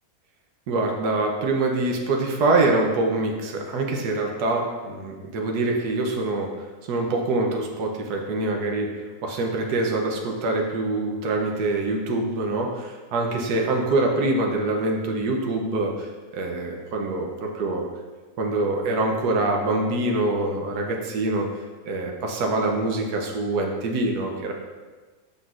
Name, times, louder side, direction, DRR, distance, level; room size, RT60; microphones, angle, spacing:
voice 1, 0.7-6.5 6.9-17.9 18.4-21.5 21.9-24.5, right 2 dB, 80° right, 1 dB, 1.3 m, -25 dB
7.0 x 5.9 x 2.5 m, 1.3 s
omnidirectional pair, 1.7 m